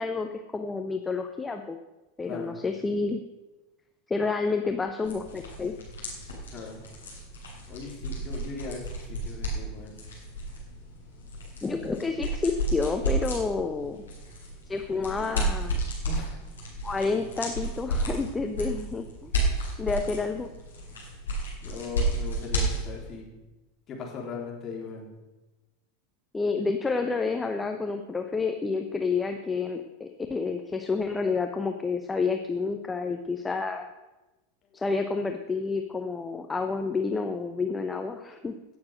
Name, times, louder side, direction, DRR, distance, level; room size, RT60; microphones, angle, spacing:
voice 1, 0.0-1.8 2.2-3.2 4.1-5.7 11.6-14.0 14.7-15.8 16.8-19.3 19.8-20.5 26.3-33.9 34.7-38.5, left 4 dB, 15° left, 5 dB, 0.9 m, -29 dB
voice 2, 2.2-2.5 6.5-6.8 7.7-10.0 16.1-16.4 21.6-23.3 23.9-25.1 34.6-34.8, left 5 dB, 30° left, 0 dB, 3.6 m, -39 dB
sound 1, 5.0-23.1, right 1 dB, 75° left, 4.5 m, -32 dB
17.0 x 7.2 x 6.4 m, 1.1 s
figure-of-eight pair, 85°, 0 cm